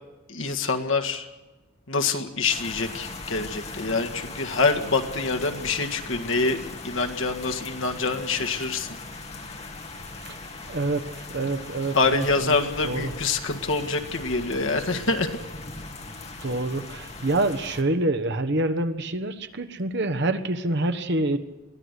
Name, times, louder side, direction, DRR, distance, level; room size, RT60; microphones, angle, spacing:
voice 1, 0.3-1.3 1.9-8.9 11.9-15.4, left 3 dB, 65° left, 4 dB, 1.8 m, -26 dB
sound 1, 2.5-17.8, left 3 dB, 30° left, 2.3 m, -39 dB
voice 2, 10.7-12.5 12.8-13.1 16.4-21.4, right 2 dB, 55° right, 10 dB, 1.2 m, -26 dB
22.5 x 16.0 x 8.3 m, 1.1 s
head